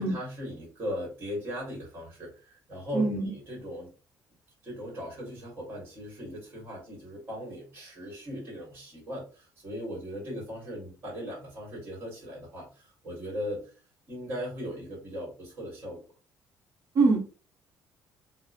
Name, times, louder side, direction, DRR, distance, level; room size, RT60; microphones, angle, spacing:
voice 1, 0.0-3.9 4.6-13.7 14.1-16.0, equal, 35° right, -3 dB, 1.4 m, -38 dB
voice 2, 2.9-3.3 16.9-17.2, right 3 dB, 50° right, 1 dB, 0.9 m, -23 dB
2.9 x 2.0 x 2.4 m, 0.35 s
cardioid pair, 155°, 7 cm